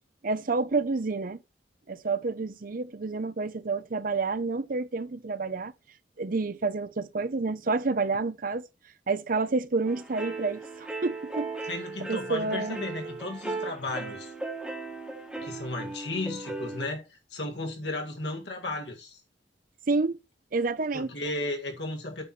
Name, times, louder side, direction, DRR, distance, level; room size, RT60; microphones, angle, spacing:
voice 1, 0.2-1.4 1.9-5.7 6.2-8.7 9.1-11.5 12.1-12.8 19.9-20.2 20.5-21.1, right 3 dB, 50° right, 0.7 m, -29 dB
sound 1, 9.9-16.9, right 3 dB, 5° right, 1.8 m, -37 dB
voice 2, 11.7-14.3 15.4-19.2 20.9-22.2, left 2 dB, 70° left, 2.1 m, -34 dB
8.8 x 4.7 x 4.2 m
head